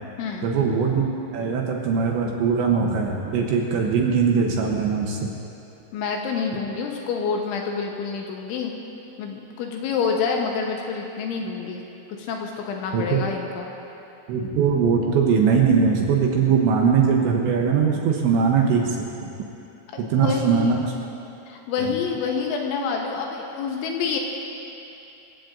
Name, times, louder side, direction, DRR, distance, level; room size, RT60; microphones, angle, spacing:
voice 1, 0.4-1.1 1.3-5.3 12.9-13.3 14.3-19.3 20.1-20.9 21.8-21.9, right 6 dB, 75° right, 0 dB, 2.9 m, -21 dB
voice 2, 5.9-8.7 9.2-11.8 12.3-13.7 19.9-20.8 21.5-24.2, left 5 dB, 75° left, 1 dB, 3.2 m, -27 dB
26.0 x 15.5 x 2.6 m, 2.8 s
omnidirectional pair, 6.0 m